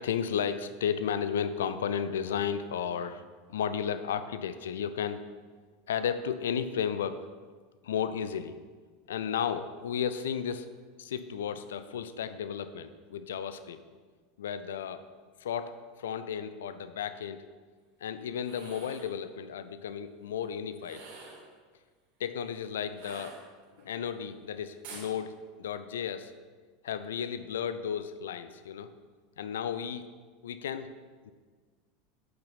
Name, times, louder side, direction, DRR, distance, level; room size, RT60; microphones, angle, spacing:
voice 1, 0.0-3.2 3.5-5.3 5.9-7.3 7.8-8.6 9.1-10.7 11.0-13.8 14.4-15.0 15.4-17.4 18.0-21.1 22.2-23.4 23.8-26.3 26.8-28.9 29.4-30.1 30.4-30.9 31.2-31.3, left 8 dB, 65° left, 11 dB, 0.5 m, -33 dB
sound 1, 18.3-19.2 20.8-21.5 22.9-23.8 24.8-25.1, right 4 dB, 55° right, 2.9 m, -47 dB
8.8 x 8.7 x 4.1 m, 1.5 s
figure-of-eight pair, 80°, 0 cm